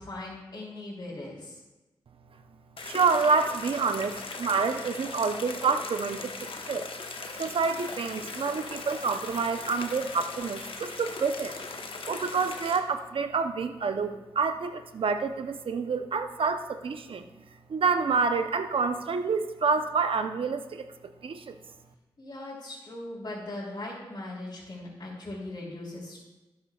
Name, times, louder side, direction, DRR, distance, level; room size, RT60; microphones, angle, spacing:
voice 1, 0.0-1.6 22.2-26.2, left 2 dB, 45° left, -10 dB, 3.4 m, -39 dB
sound 1, 2.8-12.8, left 3 dB, 65° left, 1.0 m, -39 dB
voice 2, 2.8-6.9 7.4-11.6 12.0-17.3 17.7-20.9 21.2-21.6, right 5 dB, 65° right, 8 dB, 0.7 m, -28 dB
Coin (dropping), 6.7-10.2, left 4 dB, 85° left, 2.0 m, -54 dB
12.5 x 9.5 x 2.4 m, 1.1 s
cardioid pair, 45°, 10 cm